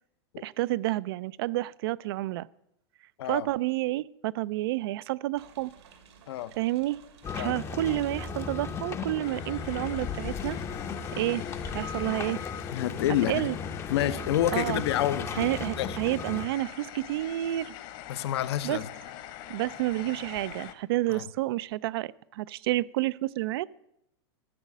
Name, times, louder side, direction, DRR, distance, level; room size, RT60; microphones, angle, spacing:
voice 1, 0.4-2.5 3.3-5.7 6.6-7.0 7.3-10.6 11.2-11.4 11.7-12.4 13.3-13.6 14.5-14.8 15.3-17.7 18.6-18.8 19.5-23.7, right 16 dB, 65° right, 20 dB, 0.4 m, -29 dB
sound 1, 5.3-12.3, right 6 dB, 85° right, 2.4 m, -55 dB
sound 2, 7.2-16.5, left 6 dB, 20° left, 0.6 m, -36 dB
sound 3, 9.2-20.7, left 13 dB, 50° left, 1.1 m, -43 dB
voice 2, 12.7-13.4 13.9-16.0 18.1-18.9 21.1-21.3, left 12 dB, 75° left, 14 dB, 0.8 m, -28 dB
13.0 x 6.4 x 7.3 m, 0.81 s
supercardioid pair, 145°, 14 cm